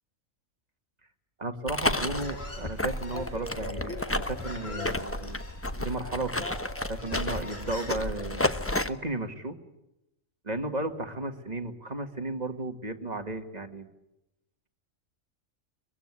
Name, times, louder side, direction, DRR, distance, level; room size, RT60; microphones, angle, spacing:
voice 1, 1.4-5.4 5.8-6.5 6.9-9.6 10.4-13.9, right 2 dB, 30° right, 6 dB, 2.0 m, -34 dB
sound 1, 1.7-8.9, left 1 dB, 10° left, 0.9 m, -32 dB
Human voice, 1.8-8.9, left 2 dB, 70° left, 4.5 m, -42 dB
23.5 x 22.0 x 9.8 m, 0.90 s
omnidirectional pair, 1.4 m